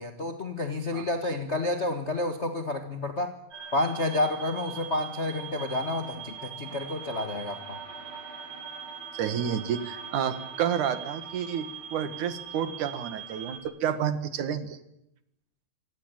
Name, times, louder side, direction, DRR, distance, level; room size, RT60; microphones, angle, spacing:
voice 1, 0.0-3.3 3.7-7.8, left 2 dB, 65° left, 6 dB, 0.6 m, -30 dB
sound 1, 3.5-13.6, right 7 dB, 35° right, 6.5 m, -41 dB
voice 2, 9.2-14.8, right 8 dB, 60° right, 11 dB, 3.0 m, -30 dB
26.0 x 17.5 x 8.9 m, 0.81 s
omnidirectional pair, 4.2 m